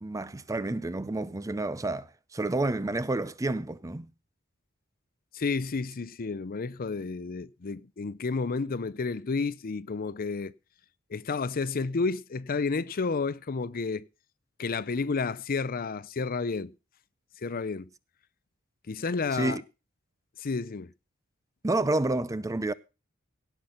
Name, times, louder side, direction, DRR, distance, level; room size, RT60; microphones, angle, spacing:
voice 1, 0.0-4.1 19.3-19.6 21.6-22.7, right 2 dB, 15° right, 0.5 m, -29 dB
voice 2, 5.3-10.5 11.1-14.0 14.6-16.7 17.4-17.9 18.9-19.6 20.4-20.9, left 4 dB, 45° left, 0.5 m, -31 dB
17.0 x 5.9 x 5.6 m
head